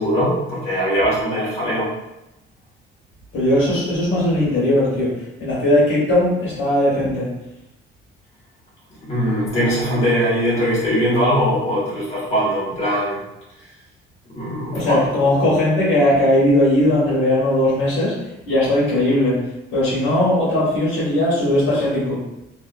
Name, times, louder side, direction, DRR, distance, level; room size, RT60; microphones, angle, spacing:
voice 1, 0.0-1.9 9.1-13.2 14.3-15.0, equal, 30° left, -8 dB, 1.4 m, -20 dB
voice 2, 3.3-7.3 14.7-18.2 18.5-19.4 19.7-22.2, left 1 dB, 75° left, -7 dB, 1.1 m, -18 dB
2.7 x 2.3 x 2.4 m, 0.88 s
cardioid pair, 130°, 20 cm